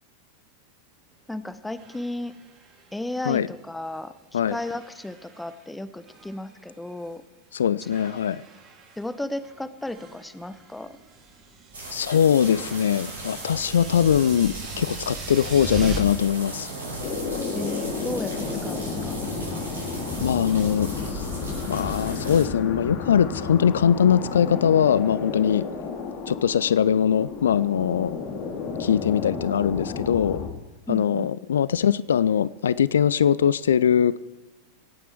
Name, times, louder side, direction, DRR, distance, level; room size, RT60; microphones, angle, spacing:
sound 1, 1.1-1.2 1.7-4.1 4.4-5.7 6.0-7.2 7.8-16.0, right 4 dB, 35° right, 3.2 m, -40 dB
voice 1, 1.3-2.3 2.9-7.2 9.0-10.9 17.5-19.2 30.9-31.3, left 1 dB, 5° left, 12 dB, 0.9 m, -34 dB
voice 2, 7.5-8.4 11.9-16.7 20.2-21.3 21.7-25.6 26.3-28.2 28.8-30.4 30.9-34.2, left 8 dB, 65° left, 19 dB, 0.4 m, -21 dB
sound 2, 11.7-22.5, right 2 dB, 70° right, 5.0 m, -37 dB
sound 3, 17.0-30.5, left 5 dB, 45° left, 2.5 m, -32 dB
25.5 x 9.2 x 4.6 m, 1.1 s
figure-of-eight pair, 90°, 0 cm